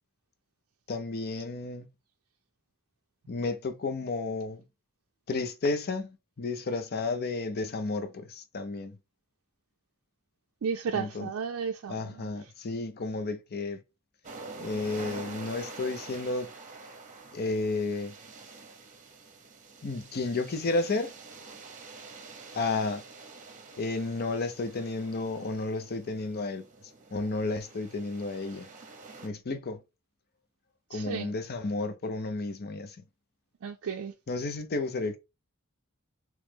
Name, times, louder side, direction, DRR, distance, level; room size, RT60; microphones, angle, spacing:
voice 1, 0.9-1.9 3.3-4.6 5.3-9.0 10.9-11.3 11.9-13.8 14.6-16.5 17.3-18.1 19.8-21.1 22.5-23.0 23.8-26.6 27.1-28.7 29.2-29.8 30.9-33.0 34.3-35.2, left 3 dB, 45° left, 0.6 m, -32 dB
voice 2, 10.6-12.3 30.9-31.3 33.6-34.1, right 6 dB, 70° right, 0.4 m, -33 dB
sound 1, 14.2-29.3, right 3 dB, 35° right, 0.8 m, -47 dB
3.1 x 3.0 x 3.4 m
head